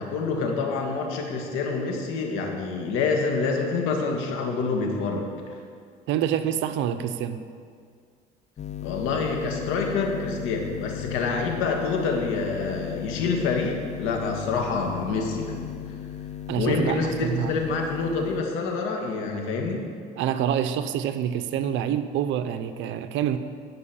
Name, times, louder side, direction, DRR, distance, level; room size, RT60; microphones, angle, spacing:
voice 1, 0.0-5.3 8.8-15.7 16.6-19.9, left 4 dB, 75° left, 2 dB, 2.1 m, -27 dB
voice 2, 6.1-7.4 16.5-17.5 20.2-23.4, right 9 dB, 70° right, 10 dB, 0.8 m, -26 dB
sound 1, 8.6-18.4, left 10 dB, 35° left, 0.6 m, -36 dB
12.5 x 5.5 x 8.7 m, 2.1 s
cardioid pair, 115°, 21 cm